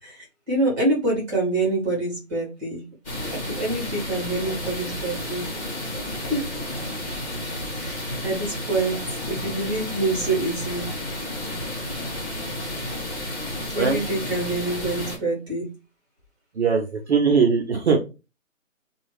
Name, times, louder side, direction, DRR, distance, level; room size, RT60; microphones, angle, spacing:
voice 1, 0.0-2.8 3.2-5.6 6.3-6.5 7.7-9.0 9.3-10.9 13.7-15.7, right 2 dB, 15° right, -4 dB, 1.3 m, -26 dB
sound 1, 3.0-15.2, left 1 dB, 25° left, 1.7 m, -31 dB
voice 2, 16.6-18.0, right 5 dB, 55° right, 2 dB, 0.7 m, -20 dB
2.8 x 2.4 x 3.2 m, 0.29 s
hypercardioid pair, 170°, 40 cm